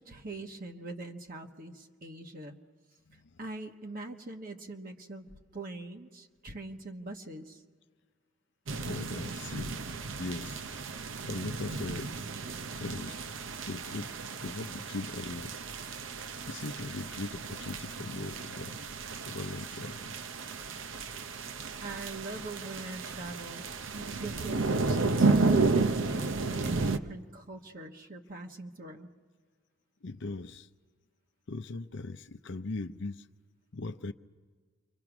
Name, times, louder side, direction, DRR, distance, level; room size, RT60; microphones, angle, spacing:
voice 1, 0.0-2.6 3.1-7.6 21.8-29.1, right 2 dB, 45° right, 1.2 m, -43 dB
voice 2, 3.1-3.4 8.8-9.8 10.2-10.9 11.2-12.1 12.8-13.2 13.7-15.6 16.5-18.9 19.3-20.1 26.5-26.7 30.0-30.7 31.5-33.3 33.7-34.1, left 3 dB, 60° left, 0.6 m, -39 dB
sound 1, 8.7-27.0, right 3 dB, 65° right, 0.8 m, -32 dB
29.0 x 24.5 x 6.1 m
head